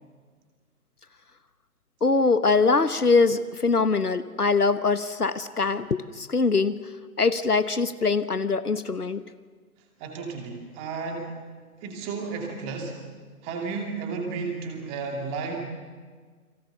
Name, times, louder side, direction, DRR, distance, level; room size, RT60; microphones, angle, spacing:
voice 1, 2.0-6.8 7.2-9.2, left 4 dB, 80° left, 13 dB, 1.3 m, -23 dB
voice 2, 10.0-11.3 11.8-13.0 13.4-15.6, right 4 dB, 15° right, 3 dB, 2.7 m, -33 dB
30.0 x 23.0 x 6.9 m, 1.5 s
figure-of-eight pair, 145°, 45 cm